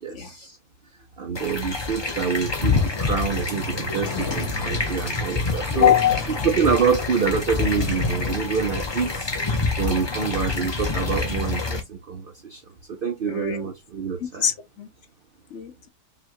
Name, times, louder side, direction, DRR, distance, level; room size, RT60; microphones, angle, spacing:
voice 1, 0.0-0.6 1.2-5.9 6.4-9.3 9.8-12.6 13.0-14.4, right 6 dB, 70° right, 0.5 m, -26 dB
sound 1, 1.4-11.8, left 4 dB, 30° left, 0.4 m, -27 dB
sound 2, 2.7-9.2, left 4 dB, 90° left, 1.5 m, -37 dB
voice 2, 5.8-6.2 10.2-10.3 13.3-13.6 14.4-14.9 15.5-15.9, left 10 dB, 65° left, 0.8 m, -22 dB
5.4 x 2.3 x 2.9 m
omnidirectional pair, 1.8 m